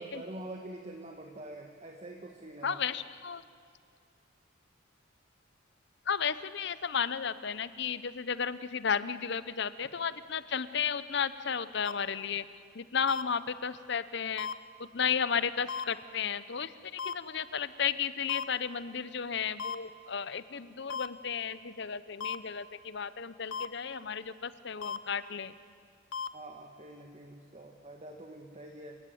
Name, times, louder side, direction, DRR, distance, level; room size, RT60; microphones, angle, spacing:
voice 1, 0.0-2.8 26.3-29.0, right 1 dB, 35° right, 2 dB, 1.6 m, -45 dB
voice 2, 2.6-3.4 6.1-12.4 12.7-14.5 14.8-25.5, left 7 dB, 60° left, 15 dB, 0.8 m, -33 dB
sound 1, 11.8-11.9 13.1-13.2 14.4-14.5 15.7-15.8 17.0-17.1 18.3-18.4 19.6-19.8 20.9-21.1 22.2-22.4 23.5-23.7 24.8-25.0 26.1-26.3, left 6 dB, 80° left, 1.1 m, -35 dB
28.5 x 17.0 x 9.3 m, 2.4 s
head